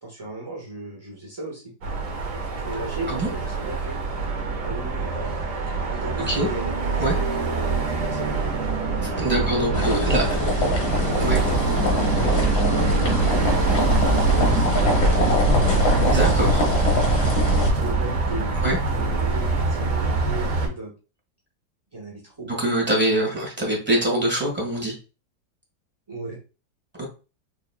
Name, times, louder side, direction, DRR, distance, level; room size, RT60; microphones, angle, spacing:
voice 1, 0.0-1.7 2.5-4.0 4.6-5.1 5.9-6.7 7.1-7.2 7.6-8.5 9.4-10.8 12.1-15.2 17.5-20.9 21.9-22.5 26.1-26.4, right 2 dB, 30° right, -3 dB, 0.4 m, -36 dB
sound 1, 1.8-20.7, right 3 dB, 50° right, 1.1 m, -24 dB
voice 2, 9.0-10.2 11.2-11.4 16.0-16.6 18.6-18.8 22.5-24.9 27.0-27.1, right 1 dB, 5° right, -2 dB, 1.2 m, -24 dB
sound 2, 9.7-17.7, left 1 dB, 80° left, 2.0 m, -23 dB
4.8 x 3.0 x 2.2 m, 0.31 s
omnidirectional pair, 2.1 m